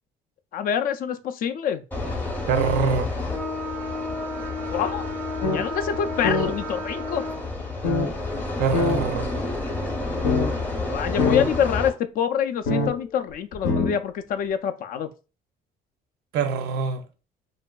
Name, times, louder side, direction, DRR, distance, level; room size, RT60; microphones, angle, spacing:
voice 1, 0.5-1.8 4.2-4.3 4.7-5.0 5.5-7.2 10.8-15.1, left 8 dB, 55° left, 0.4 m, -26 dB
Train horn, 1.9-11.9, left 2 dB, 10° left, 0.6 m, -30 dB
voice 2, 2.5-3.1 8.6-9.3 16.3-17.0, right 5 dB, 80° right, 0.5 m, -24 dB
sound 1, 5.4-5.6 5.9-6.0 6.2-6.5 7.8-8.1 8.7-9.0 9.7-9.8 10.2-10.5 10.8-10.9 11.2-11.5 12.7-12.9 13.5-13.9, left 3 dB, 90° left, 0.8 m, -22 dB
3.0 x 2.5 x 2.3 m
cardioid pair, 110°, 17 cm